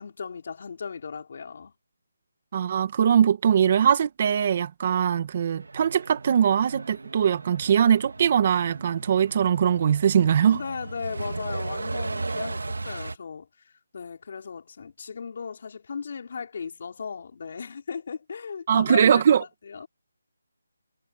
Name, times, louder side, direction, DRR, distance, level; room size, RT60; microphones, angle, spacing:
voice 1, 0.0-1.7 10.5-19.9, left 6 dB, 40° left, 5.0 m, -36 dB
voice 2, 2.5-10.6 18.7-19.4, right 8 dB, 30° right, 2.2 m, -21 dB
Truck, 5.6-13.2, right 3 dB, 85° right, 3.1 m, -36 dB
hypercardioid pair, 170°, 0 cm